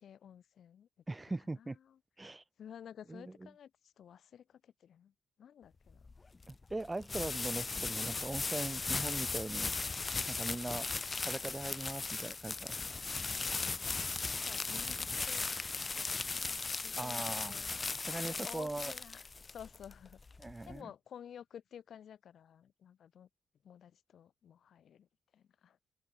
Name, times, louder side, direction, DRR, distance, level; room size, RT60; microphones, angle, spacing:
voice 1, 0.0-0.9 1.5-2.0 2.6-6.1 13.8-14.0 14.2-15.5 16.8-17.2 17.5-17.7 18.2-20.2 20.6-23.3 23.6-25.1 25.3-25.8, left 9 dB, 65° left, 4.7 m, -53 dB
voice 2, 1.1-1.8 2.2-2.4 3.1-3.2 6.5-9.7 10.3-10.9 11.3-12.7 17.0-17.5 18.1-18.9 20.4-20.9, right 2 dB, 15° right, 0.8 m, -40 dB
sound 1, 5.9-20.8, left 4 dB, 30° left, 0.5 m, -37 dB
cardioid pair, 110°, 0 cm